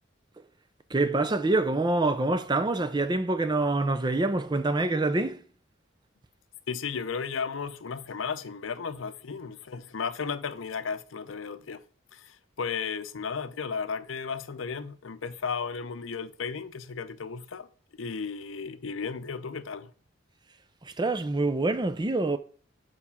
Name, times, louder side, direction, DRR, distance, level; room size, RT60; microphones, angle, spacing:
voice 1, 0.9-5.4 21.0-22.4, right 2 dB, 20° right, 0.5 m, -26 dB
voice 2, 6.7-11.8 12.1-17.7 18.0-19.9, left 5 dB, 85° left, 0.6 m, -34 dB
7.1 x 4.8 x 5.6 m
head